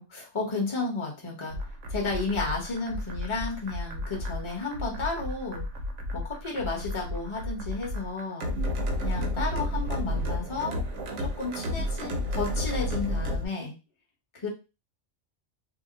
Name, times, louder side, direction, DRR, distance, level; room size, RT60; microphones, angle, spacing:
voice 1, 0.0-1.6 1.9-5.6 6.1-8.5 9.0-10.8 11.2-13.7 14.3-14.5, left 3 dB, 25° left, -1 dB, 0.9 m, -32 dB
sound 1, 1.5-13.5, left 1 dB, 75° right, 1.0 m, -32 dB
2.8 x 2.1 x 3.9 m, 0.28 s
omnidirectional pair, 1.3 m